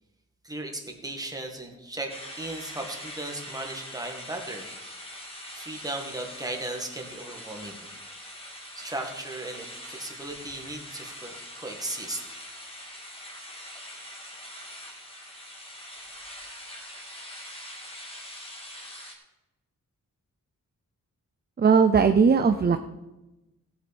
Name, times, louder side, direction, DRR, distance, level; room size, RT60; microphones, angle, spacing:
voice 1, 0.4-4.7 5.5-7.9 8.7-12.2, right 2 dB, 10° right, 2 dB, 1.9 m, -36 dB
sound 1, 2.1-19.1, left 1 dB, 15° left, 2.2 m, -43 dB
voice 2, 21.6-22.8, right 5 dB, 30° right, 8 dB, 0.5 m, -19 dB
17.0 x 8.7 x 4.3 m, 1.0 s
wide cardioid pair, 155°, 32 cm